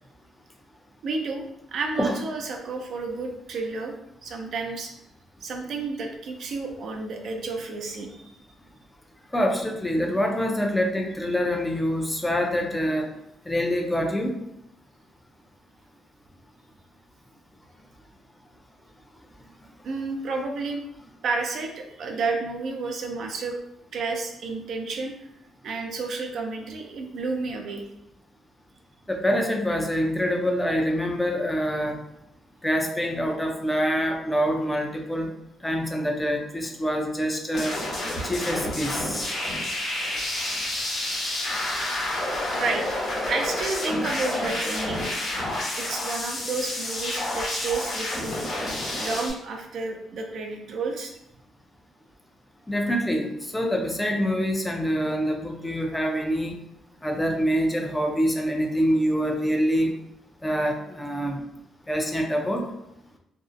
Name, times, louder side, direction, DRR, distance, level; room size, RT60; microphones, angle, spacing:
voice 1, 1.0-1.4 1.7-3.9 4.2-4.9 5.4-8.3 19.8-20.8 21.2-23.6 23.9-25.3 25.6-27.8 42.5-42.9 43.3-45.1 45.8-48.4 48.9-51.1, right 3 dB, 65° right, 2 dB, 0.4 m, -31 dB
voice 2, 9.3-13.1 13.5-14.4 29.1-32.0 32.6-35.3 35.6-37.8 38.2-39.3 52.7-56.5 57.0-59.9 60.4-61.4 61.9-62.6, equal, 10° left, 2 dB, 0.4 m, -25 dB
sound 1, 37.5-49.3, left 1 dB, 55° left, 0.9 m, -29 dB
2.6 x 2.0 x 2.5 m, 0.83 s
cardioid pair, 90°, 0 cm